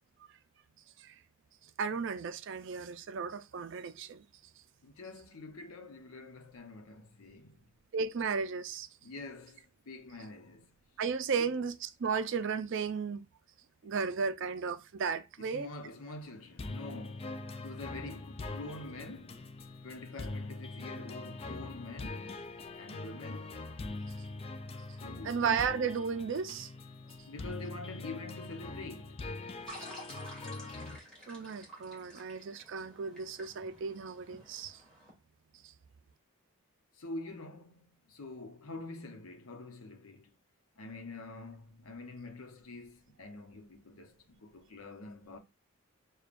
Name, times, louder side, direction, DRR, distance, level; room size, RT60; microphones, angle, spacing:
voice 1, 1.8-4.2 7.9-8.9 11.0-13.3 13.8-15.7 25.2-26.7 31.3-34.8, right 5 dB, 55° right, 0.4 m, -34 dB
voice 2, 4.8-7.7 9.0-10.8 11.4-11.5 13.8-13.9 15.4-19.5 19.8-22.4 22.8-23.6 25.0-25.4 27.3-29.3 37.0-40.3 40.8-45.4, left 2 dB, 80° left, 0.8 m, -46 dB
sound 1, 16.6-31.0, left 2 dB, 25° left, 0.4 m, -43 dB
sound 2, 29.7-35.1, equal, 5° left, 2.0 m, -51 dB
6.7 x 2.3 x 2.5 m
head